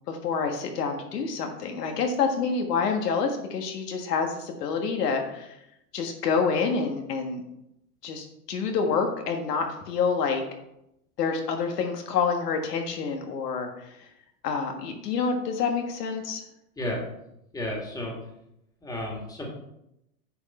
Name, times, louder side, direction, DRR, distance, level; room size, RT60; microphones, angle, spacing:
voice 1, 0.1-5.5 5.9-7.4 8.0-10.4 11.2-13.7 14.4-16.4, left 5 dB, 70° left, 4 dB, 1.7 m, -27 dB
voice 2, 17.5-18.2 18.8-19.5, left 1 dB, 5° left, -1 dB, 2.1 m, -32 dB
10.0 x 5.5 x 4.3 m, 0.83 s
hypercardioid pair, 125°, 49 cm